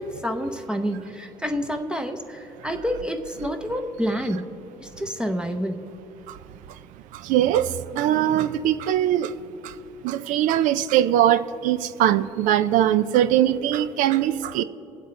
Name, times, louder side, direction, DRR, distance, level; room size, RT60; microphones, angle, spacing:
voice 1, 0.0-4.5 4.8-5.9, equal, 5° right, 7 dB, 0.7 m, -28 dB
voice 2, 7.2-7.7 7.9-9.3 10.0-14.6, right 11 dB, 85° right, 15 dB, 0.4 m, -21 dB
22.0 x 7.9 x 3.2 m, 2.9 s
cardioid pair, 105°, 13 cm